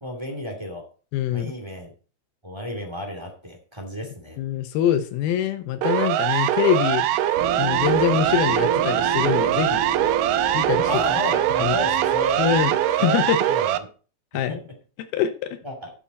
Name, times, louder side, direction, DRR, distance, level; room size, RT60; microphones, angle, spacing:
voice 1, 0.0-0.9 1.3-1.9 2.4-4.4 10.9-12.4 13.0-13.7 14.3-14.6 15.6-15.9, left 1 dB, 10° right, 1 dB, 1.8 m, -32 dB
voice 2, 1.1-1.5 4.4-7.1 7.6-9.8 10.5-10.9 11.6-11.8 12.4-13.4 14.3-14.6 15.1-15.6, left 9 dB, 90° left, 7 dB, 2.8 m, -24 dB
Siren, 5.8-13.8, right 13 dB, 80° right, 2.2 m, -22 dB
sound 1, 7.4-13.1, right 3 dB, 50° right, 3.6 m, -31 dB
12.5 x 7.1 x 4.2 m, 0.37 s
omnidirectional pair, 4.2 m